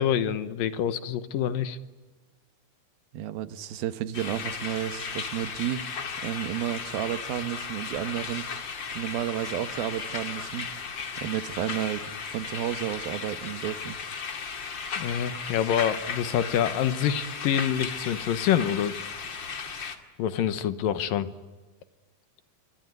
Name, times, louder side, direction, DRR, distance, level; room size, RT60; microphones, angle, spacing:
voice 1, 0.0-1.8 15.0-18.9 20.2-21.3, left 9 dB, 70° left, 13 dB, 2.6 m, -26 dB
voice 2, 3.1-5.9 6.2-8.5 8.9-10.7 11.2-12.0 12.3-14.0, right 12 dB, 75° right, 12 dB, 2.9 m, -31 dB
sound 1, 4.1-20.0, left 5 dB, 40° left, 2.1 m, -36 dB
27.0 x 23.0 x 9.5 m, 1.2 s
omnidirectional pair, 4.4 m